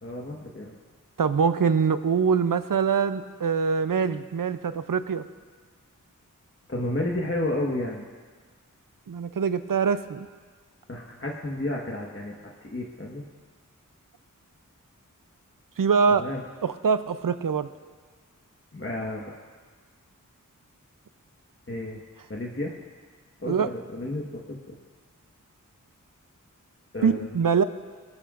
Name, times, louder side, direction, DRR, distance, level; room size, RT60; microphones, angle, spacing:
voice 1, 0.0-0.8 6.7-8.0 10.9-12.3 12.6-13.2 16.1-16.4 18.7-19.3 21.7-22.0 22.3-22.7 23.4-24.8 26.9-27.3, left 1 dB, 40° left, -2 dB, 1.4 m, -31 dB
voice 2, 1.2-5.2 9.1-10.3 15.8-16.3 16.6-17.7 23.5-23.7 27.0-27.6, right 6 dB, 80° right, 12 dB, 0.6 m, -24 dB
22.5 x 14.5 x 2.5 m, 1.5 s
wide cardioid pair, 60°, 33 cm